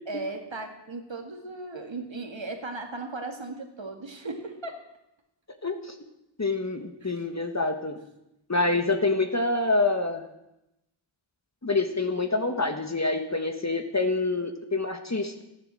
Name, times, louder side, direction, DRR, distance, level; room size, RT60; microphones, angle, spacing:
voice 1, 0.1-4.8 7.0-7.1, right 3 dB, 65° right, 4 dB, 2.1 m, -37 dB
voice 2, 5.6-5.9 6.4-8.0 8.5-10.2 11.6-15.4, left 3 dB, 35° left, 6 dB, 1.4 m, -26 dB
13.5 x 10.5 x 7.5 m, 0.89 s
wide cardioid pair, 70°, 48 cm